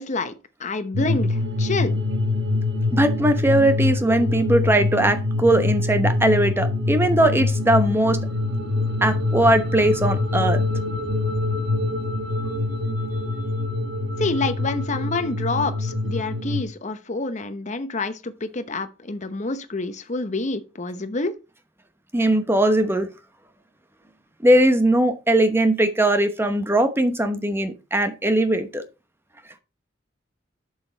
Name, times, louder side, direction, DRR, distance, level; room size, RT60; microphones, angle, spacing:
voice 1, 0.0-2.0 14.2-21.4, left 3 dB, 40° left, 0.9 m, -28 dB
sound 1, 0.9-16.6, left 2 dB, 60° right, 1.5 m, -24 dB
voice 2, 2.9-8.2 9.0-10.6 22.1-23.1 24.4-28.8, right 1 dB, 10° right, 0.9 m, -20 dB
7.5 x 6.6 x 4.0 m
head